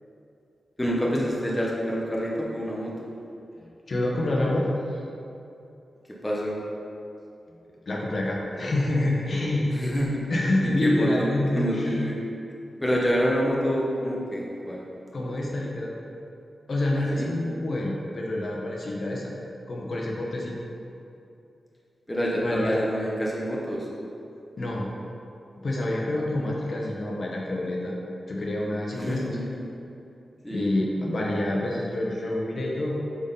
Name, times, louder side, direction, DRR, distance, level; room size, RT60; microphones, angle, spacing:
voice 1, 0.8-2.9 6.2-6.6 9.7-10.2 10.8-11.3 11.6-12.2 12.8-14.8 16.9-17.3 22.1-23.9 28.9-29.4 30.4-30.7, equal, 10° left, -4 dB, 0.9 m, -27 dB
voice 2, 3.6-5.0 7.9-9.7 10.3-12.0 15.1-15.9 16.7-19.3 19.7-20.6 22.4-22.9 24.6-24.9 25.6-27.9 28.3-29.4 30.5-33.0, left 1 dB, 50° left, -3 dB, 0.9 m, -27 dB
8.0 x 3.8 x 4.0 m, 2.7 s
wide cardioid pair, 140°, 0 cm